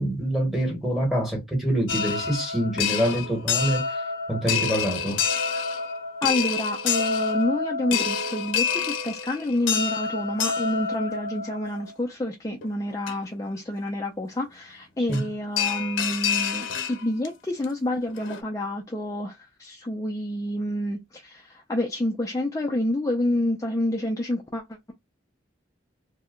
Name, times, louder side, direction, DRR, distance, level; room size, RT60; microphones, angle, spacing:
voice 1, 0.0-4.0 4.3-5.2 15.1-15.2, right 1 dB, ahead, 1.2 m, -25 dB
sound 1, 1.9-11.9 12.6-12.7 13.1-13.2 15.1-15.3 15.6-17.3 17.6-17.7 18.1-18.4, left 6 dB, 90° left, 0.7 m, -28 dB
voice 2, 6.2-24.8, left 1 dB, 15° left, 0.4 m, -28 dB
2.7 x 2.1 x 3.6 m
head